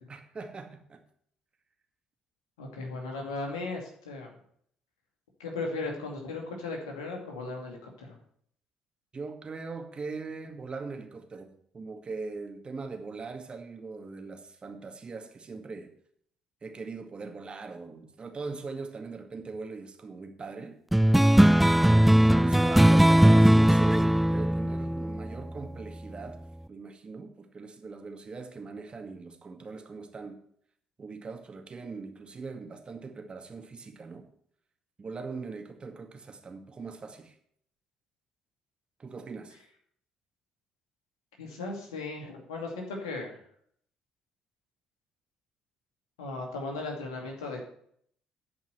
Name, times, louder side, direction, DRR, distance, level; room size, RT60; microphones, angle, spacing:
voice 1, 0.1-1.0 9.1-15.9 16.6-20.8 22.0-26.4 26.7-30.4 31.0-34.2 35.0-37.4 39.0-39.6, right 4 dB, 35° right, 5 dB, 2.1 m, -40 dB
voice 2, 2.6-4.3 5.4-8.2 41.4-43.4 46.2-47.6, left 3 dB, 85° left, 1 dB, 2.4 m, -36 dB
sound 1, 20.9-25.8, right 1 dB, 5° right, 0.3 m, -20 dB
11.0 x 5.4 x 8.0 m, 0.65 s
hypercardioid pair, 50°, 3 cm